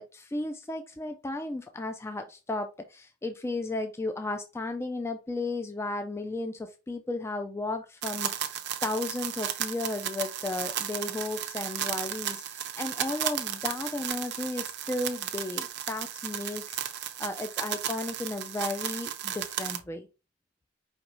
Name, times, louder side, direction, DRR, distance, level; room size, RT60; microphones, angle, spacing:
voice 1, 0.0-20.1, left 2 dB, 15° left, 0.3 m, -34 dB
sound 1, 8.0-19.8, right 10 dB, 60° right, 0.6 m, -34 dB
5.0 x 3.0 x 3.0 m
head